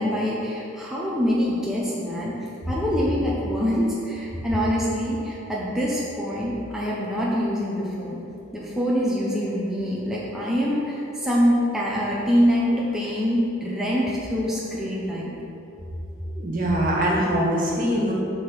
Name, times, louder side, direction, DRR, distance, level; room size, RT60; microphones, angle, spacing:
voice 1, 0.0-2.4 2.7-8.2 8.5-15.4, equal, ahead, -6 dB, 0.8 m, -25 dB
voice 2, 16.3-18.1, equal, 45° right, -3 dB, 1.8 m, -23 dB
8.5 x 3.9 x 6.7 m, 2.9 s
head